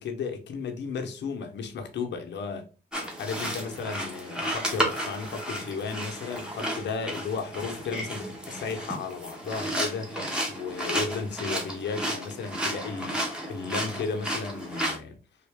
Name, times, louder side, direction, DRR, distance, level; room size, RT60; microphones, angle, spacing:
voice 1, 0.0-2.7 3.2-10.1 10.5-15.2, left 5 dB, 65° left, 0.9 m, -34 dB
sound 1, 2.9-15.0, equal, 5° right, 1.2 m, -33 dB
3.6 x 2.6 x 3.5 m
cardioid pair, 90°, 20 cm